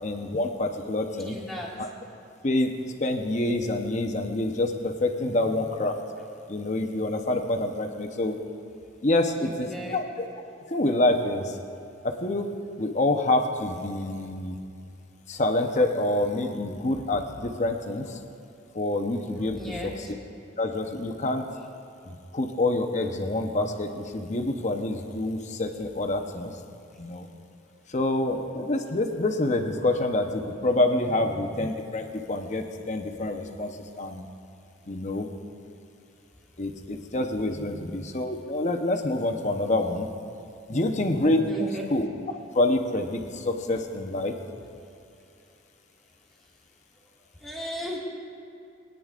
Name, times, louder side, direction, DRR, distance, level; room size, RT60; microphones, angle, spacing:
voice 1, 0.0-1.4 1.8-1.9 2.4-2.7 3.0-6.0 6.5-8.4 9.0-10.3 10.7-11.6 12.0-12.5 12.8-14.6 15.3-18.2 18.7-20.2 20.6-21.5 22.1-26.5 27.0-27.3 27.9-34.3 34.9-35.3 36.6-40.1 40.7-44.3, left 2 dB, 35° left, 4 dB, 0.8 m, -27 dB
voice 2, 1.3-1.7 5.2-5.6 9.4-10.0 19.4-20.1 31.1-31.4 37.5-38.0 40.7-41.1 41.4-41.8 47.4-48.0, equal, ahead, -5 dB, 1.8 m, -37 dB
21.5 x 10.0 x 2.5 m, 2.6 s
head